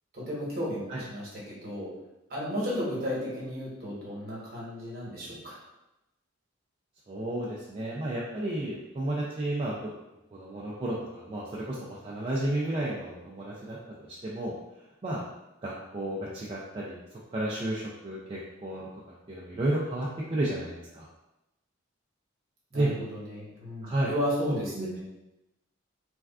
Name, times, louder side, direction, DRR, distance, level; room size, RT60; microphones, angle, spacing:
voice 1, 0.1-1.9 2.3-5.6 22.7-25.0, equal, 50° right, -6 dB, 1.0 m, -34 dB
voice 2, 7.1-9.9 10.3-13.8 14.2-14.5 15.0-15.2 15.6-17.0 17.3-18.9 19.3-21.1 22.7-22.9 23.8-24.1 24.8-24.9, right 1 dB, 25° right, -6 dB, 0.3 m, -32 dB
3.3 x 2.3 x 2.3 m, 0.95 s
head